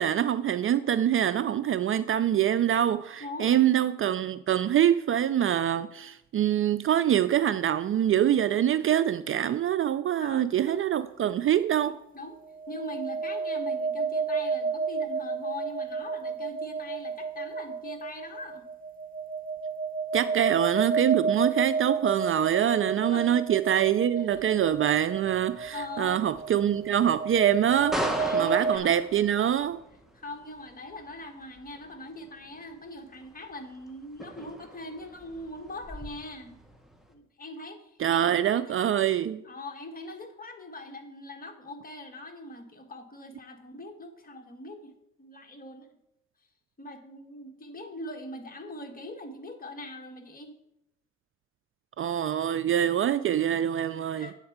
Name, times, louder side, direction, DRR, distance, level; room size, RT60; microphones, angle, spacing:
voice 1, 0.0-12.0 20.1-28.0 28.3-29.8 38.0-39.4 52.0-54.3, right 10 dB, 45° right, 0.4 m, -25 dB
voice 2, 3.2-3.6 10.2-10.8 11.9-12.4 12.7-18.7 23.0-23.4 24.2-24.5 25.7-26.2 28.2-28.9 30.1-36.6 37.1-38.2 38.6-38.8 39.4-44.9 45.2-45.9 46.8-50.5 54.2-54.3, left 1 dB, 30° left, 1.5 m, -42 dB
sound 1, 10.7-10.9 12.5-28.8, right 5 dB, 30° right, 1.0 m, -32 dB
sound 2, 24.3-37.1, equal, ahead, 1.3 m, -41 dB
8.6 x 4.5 x 7.2 m
cardioid pair, 90°, 30 cm